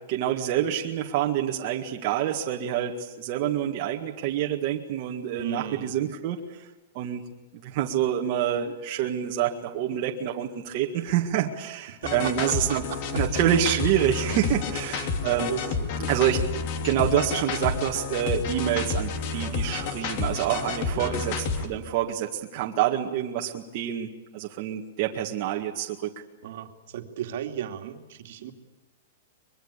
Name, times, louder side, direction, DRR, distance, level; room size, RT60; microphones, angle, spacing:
voice 1, 0.1-6.6 6.9-7.2 7.5-12.8 13.1-15.5 16.1-16.4 16.8-24.1 24.3-26.1, right 10 dB, 35° right, 1 dB, 2.0 m, -27 dB
voice 2, 5.4-5.9 11.9-12.6 12.9-13.0 14.9-16.1 20.9-21.2 26.4-28.5, right 10 dB, 50° right, 6 dB, 2.5 m, -36 dB
sound 1, 12.0-21.7, left 4 dB, 35° left, 2.9 m, -30 dB
23.5 x 23.0 x 8.4 m, 1.1 s
supercardioid pair, 170°, 0 cm